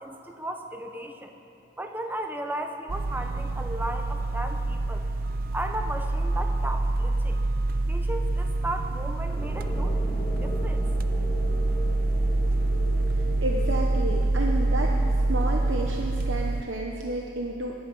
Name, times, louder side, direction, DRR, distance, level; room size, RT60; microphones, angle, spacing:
voice 1, 0.0-1.3 1.8-5.0 5.5-7.4 7.9-9.9 10.3-10.9, right 1 dB, 10° right, 4 dB, 0.9 m, -35 dB
sound 1, 2.9-16.6, right 2 dB, 45° right, 0.5 m, -26 dB
sound 2, 9.4-16.3, equal, 15° left, 1.4 m, -39 dB
voice 2, 13.2-14.9 15.3-17.8, right 2 dB, 70° right, 1 dB, 0.9 m, -31 dB
19.5 x 10.5 x 5.4 m, 2.9 s
head